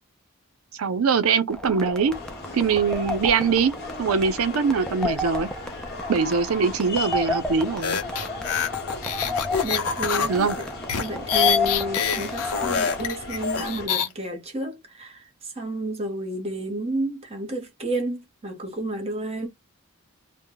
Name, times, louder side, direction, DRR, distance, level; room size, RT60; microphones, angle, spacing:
voice 1, 0.7-2.1 2.5-3.7 4.0-5.5 6.1-8.0 10.3-10.6, right 5 dB, 70° right, 0.5 m, -22 dB
sound 1, 1.5-13.1, left 2 dB, 5° left, 0.3 m, -32 dB
sound 2, 2.1-13.9, left 3 dB, 45° left, 1.0 m, -37 dB
sound 3, 7.8-14.1, left 7 dB, 90° left, 0.6 m, -26 dB
voice 2, 9.6-10.7 11.0-19.5, right 1 dB, 25° right, 0.8 m, -31 dB
2.1 x 2.0 x 3.7 m
head